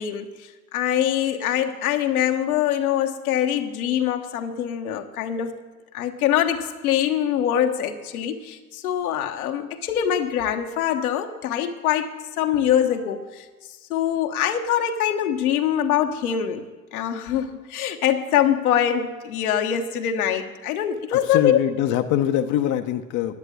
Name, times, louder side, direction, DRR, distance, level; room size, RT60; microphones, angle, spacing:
voice 1, 0.0-5.6 5.9-13.4 13.9-21.6, left 10 dB, 75° left, 1.4 m, -24 dB
voice 2, 21.1-23.4, left 11 dB, 40° left, 0.8 m, -23 dB
10.5 x 9.0 x 8.4 m
hypercardioid pair, 90°, 44 cm